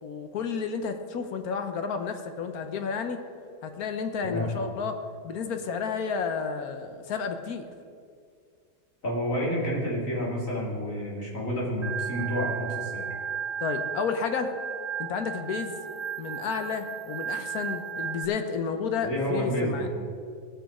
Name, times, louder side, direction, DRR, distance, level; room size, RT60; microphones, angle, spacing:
voice 1, 0.0-3.2 3.6-4.9 5.2-7.7 13.6-14.5 15.0-15.8 16.2-19.9, left 5 dB, 80° left, 7 dB, 1.3 m, -31 dB
voice 2, 9.0-13.0 19.0-19.9, equal, 60° left, -5 dB, 3.1 m, -29 dB
Organ, 11.8-18.2, right 7 dB, 25° right, 0.7 m, -34 dB
18.0 x 6.1 x 4.9 m, 2.2 s
omnidirectional pair, 1.6 m